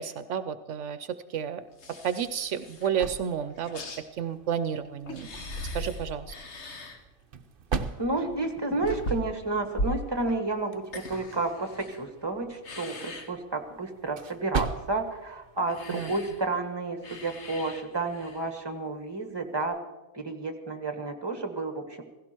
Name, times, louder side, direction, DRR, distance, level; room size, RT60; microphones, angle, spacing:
voice 1, 0.0-1.6 2.0-3.8 4.1-5.3 5.7-6.3 15.9-16.1, right 8 dB, 80° right, 12 dB, 1.0 m, -31 dB
sound 1, 1.7-3.1 3.4-4.5 4.9-7.2 7.5-12.2 12.5-13.3 15.7-18.6 19.6-19.7, equal, 65° left, 1.7 m, -39 dB
sound 2, 2.1-16.6, right 5 dB, 50° right, 0.9 m, -40 dB
voice 2, 8.0-19.8 20.1-22.0, right 2 dB, 20° right, 7 dB, 1.6 m, -31 dB
16.5 x 16.5 x 4.5 m, 1.1 s
omnidirectional pair, 1.2 m